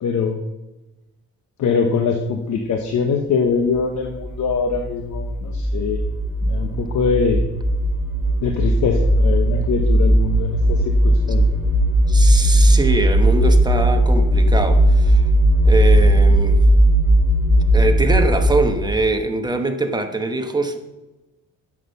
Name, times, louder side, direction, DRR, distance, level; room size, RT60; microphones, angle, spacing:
voice 1, 0.0-0.4 1.6-6.0 6.4-7.4 8.4-11.6, left 5 dB, 70° left, 1.1 m, -23 dB
sound 1, 3.8-19.1, right 1 dB, 45° left, 3.7 m, -17 dB
voice 2, 12.1-15.2 15.6-16.6 17.7-20.8, right 2 dB, 15° right, 1.2 m, -23 dB
9.9 x 7.5 x 5.6 m
cardioid pair, 90°, 30 cm